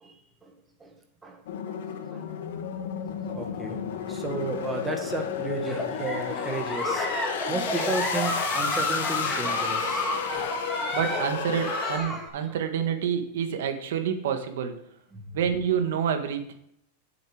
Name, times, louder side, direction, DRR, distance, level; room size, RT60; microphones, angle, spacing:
voice 1, 0.0-0.5 0.8-0.9 1.2-1.4 1.7-1.8 2.1-2.3 3.3-3.8 4.1-10.4 10.7-10.8 12.1-12.2 12.5-12.6 15.1-15.4, right 3 dB, 10° right, 4 dB, 1.6 m, -34 dB
sound 1, 1.5-12.0, left 8 dB, 75° left, 1.3 m, -33 dB
Giggle, 5.6-12.3, left 1 dB, 5° left, 1.7 m, -30 dB
voice 2, 10.9-14.8 15.3-16.5, right 8 dB, 70° right, 7 dB, 1.6 m, -28 dB
8.8 x 7.9 x 4.9 m, 0.74 s
supercardioid pair, 155°, 0 cm